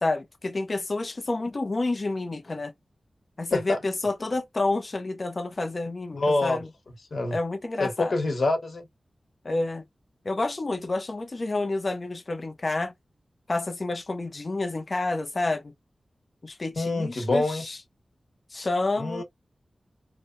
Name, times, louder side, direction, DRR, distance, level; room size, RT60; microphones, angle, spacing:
voice 1, 0.0-2.7 3.4-6.7 7.3-8.1 9.4-9.8 10.2-12.9 13.5-15.7 16.4-17.8 18.5-19.2, left 2 dB, 45° left, 0.5 m, -29 dB
voice 2, 6.1-6.6 7.1-7.4 7.8-8.8 16.8-17.7 19.0-19.2, left 2 dB, 65° left, 1.1 m, -26 dB
2.9 x 2.0 x 2.5 m
wide cardioid pair, 90°, 0 cm